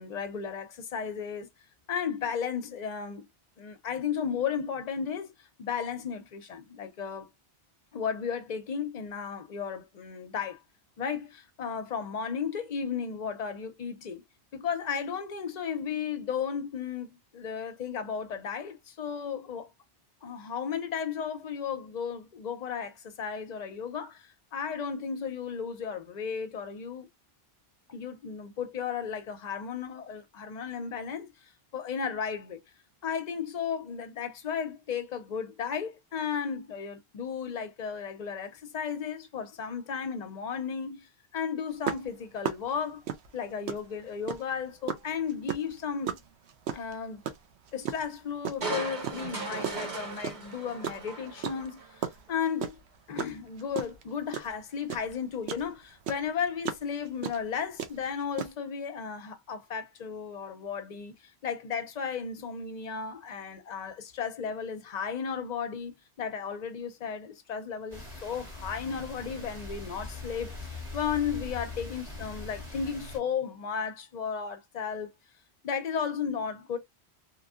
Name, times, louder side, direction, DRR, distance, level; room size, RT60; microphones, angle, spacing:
voice 1, 0.0-1.5 1.9-3.3 3.6-5.3 5.6-7.3 7.9-10.6 11.0-14.2 14.5-19.7 20.2-27.1 27.9-31.3 31.7-32.6 33.0-43.0 43.3-46.2 46.7-47.2 47.7-52.0 52.3-52.8 53.1-61.2 61.4-65.9 66.2-75.1 75.6-76.8, left 7 dB, 50° left, 0.6 m, -34 dB
sound 1, 41.8-44.6 44.9-48.6 49.0-50.6 50.8-55.7 56.0-58.5, right 8 dB, 85° right, 0.9 m, -35 dB
Crushing, 48.6-52.0 52.4-52.5, right 3 dB, 45° right, 1.0 m, -37 dB
sound 2, 67.9-73.2, left 2 dB, 30° right, 1.2 m, -41 dB
2.9 x 2.6 x 2.4 m
omnidirectional pair, 1.1 m